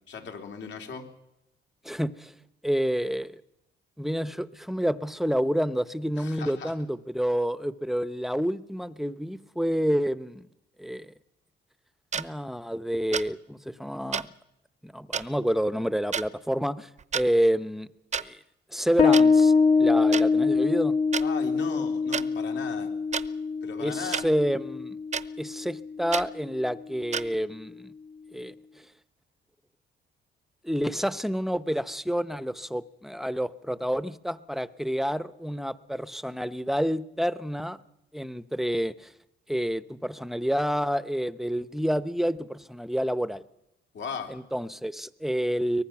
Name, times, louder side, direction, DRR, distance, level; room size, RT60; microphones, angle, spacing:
voice 1, 0.1-1.1 6.2-6.7 21.2-22.9 23.6-24.3 43.9-44.4, left 6 dB, 65° left, 3.2 m, -37 dB
voice 2, 1.8-2.3 2.6-3.4 4.0-10.5 10.8-11.1 12.1-14.3 14.8-17.9 18.1-18.4 18.7-19.5 19.8-20.9 23.8-25.0 25.4-27.9 28.3-28.5 30.6-37.8 38.1-39.1 39.5-43.4 44.3-45.8, equal, ahead, 0.8 m, -28 dB
sound 1, 12.1-12.2 13.1-13.3 14.1-14.2 15.1-15.2 16.1-16.3 17.0-17.3 18.1-18.2 19.1-19.2 20.1-20.2 21.1-21.2 22.1-22.2 23.1-23.3 24.1-24.3 25.1-25.2 26.1-26.3 27.1-27.2, right 6 dB, 35° right, 0.8 m, -29 dB
Bass guitar, 19.0-26.1, left 4 dB, 30° left, 1.4 m, -24 dB
23.5 x 19.5 x 6.0 m
cardioid pair, 90°, 20 cm